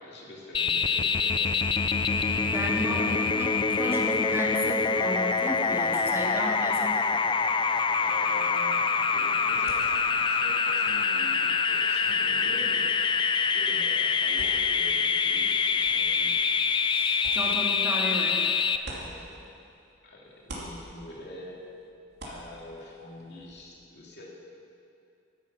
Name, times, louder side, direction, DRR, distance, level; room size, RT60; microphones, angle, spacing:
voice 1, 0.0-1.7 2.5-3.3 6.3-6.5 8.0-12.9 13.5-16.5 19.0-19.3 20.0-21.6 22.2-24.3, left 1 dB, 60° left, -3 dB, 2.6 m, -44 dB
sound 1, 0.5-18.8, left 5 dB, 25° left, 0.4 m, -25 dB
voice 2, 2.5-3.5 3.8-7.0 16.9-18.5, equal, 15° right, -3 dB, 2.2 m, -33 dB
sound 2, 8.8-19.9 20.2-23.7, right 1 dB, 60° right, 2.8 m, -49 dB
14.5 x 12.5 x 5.9 m, 2.6 s
head